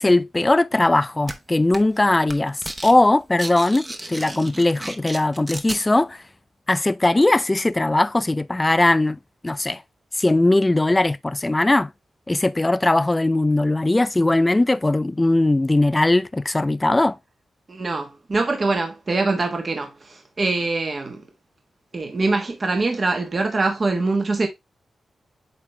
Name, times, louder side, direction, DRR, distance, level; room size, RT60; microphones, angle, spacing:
voice 1, 0.0-6.2 6.7-9.8 10.2-11.9 12.3-17.2, left 2 dB, 20° left, 0.4 m, -19 dB
sound 1, 1.3-1.4 1.7-2.0 2.3-2.9 3.2-5.8, right 1 dB, 20° right, 1.0 m, -34 dB
voice 2, 17.7-21.2 21.9-24.5, right 3 dB, 40° right, 1.2 m, -23 dB
8.5 x 3.4 x 3.3 m
cardioid pair, 85°, 0 cm